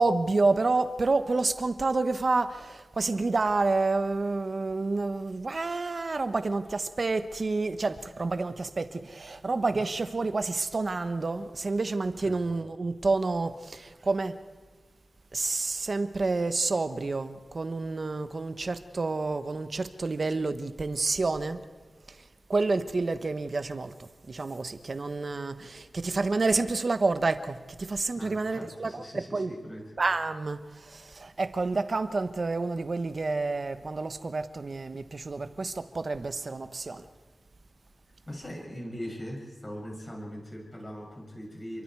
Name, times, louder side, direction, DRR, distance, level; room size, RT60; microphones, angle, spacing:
voice 1, 0.0-14.4 15.3-21.6 22.5-29.5 30.0-37.0, right 3 dB, 40° right, 1.2 m, -29 dB
voice 2, 28.1-29.9 38.3-41.8, equal, 25° left, 7.5 m, -40 dB
29.5 x 23.5 x 4.8 m
wide cardioid pair, 145°, 0 cm